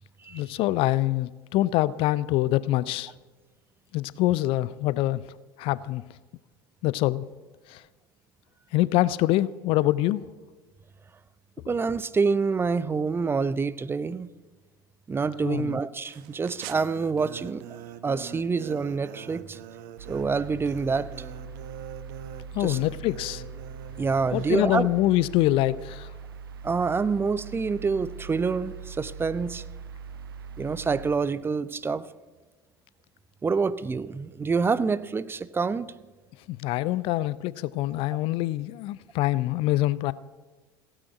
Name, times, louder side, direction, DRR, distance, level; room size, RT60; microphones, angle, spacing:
voice 1, 0.3-3.1 3.9-5.2 5.6-6.0 6.8-7.2 7.7-7.8 8.7-10.2 15.4-15.8 22.5-23.4 24.3-26.1 36.5-40.1, left 16 dB, 50° left, 0.5 m, -25 dB
voice 2, 11.7-14.3 15.1-17.6 18.0-19.6 20.1-21.1 22.6-22.8 24.0-24.9 26.6-29.6 30.6-32.0 33.4-35.8, right 4 dB, 20° right, 0.6 m, -27 dB
sound 1, 16.0-24.8, right 10 dB, 60° right, 1.0 m, -44 dB
sound 2, 20.0-31.1, right 5 dB, 75° right, 0.7 m, -42 dB
16.0 x 10.0 x 7.8 m
figure-of-eight pair, 65°, 12 cm